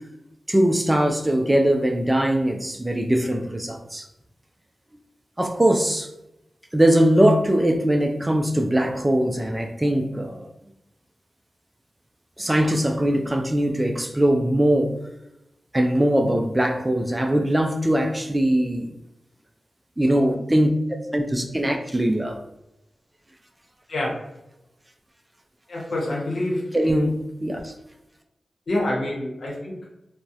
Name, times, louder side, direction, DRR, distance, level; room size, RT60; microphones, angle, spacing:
voice 1, 0.5-4.1 5.4-6.1 6.7-10.5 12.4-15.0 15.7-18.9 20.0-20.7 21.1-22.4 26.7-27.7, right 1 dB, 20° right, 4 dB, 0.3 m, -21 dB
voice 2, 25.7-26.6 28.7-29.7, left 1 dB, 75° left, -3 dB, 0.8 m, -26 dB
2.3 x 2.0 x 2.7 m, 0.90 s
cardioid pair, 55°, 0 cm